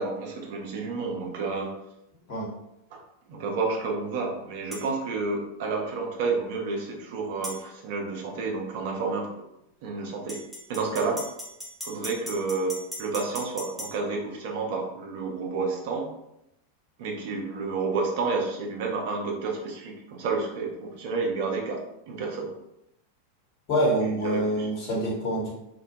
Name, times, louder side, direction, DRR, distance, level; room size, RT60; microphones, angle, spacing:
voice 1, 0.0-1.7 2.9-3.0 3.3-9.3 9.8-10.4 10.7-11.2 11.8-16.1 17.0-21.8 22.1-22.5 24.0-24.7, right 4 dB, 50° right, 1 dB, 0.5 m, -30 dB
sound 1, 4.7-4.9 7.4-7.6 10.3-13.9, left 1 dB, ahead, 0.6 m, -38 dB
voice 2, 23.7-25.5, right 1 dB, 40° left, -4 dB, 1.0 m, -26 dB
2.1 x 2.1 x 2.8 m, 0.84 s
figure-of-eight pair, 90°, 0 cm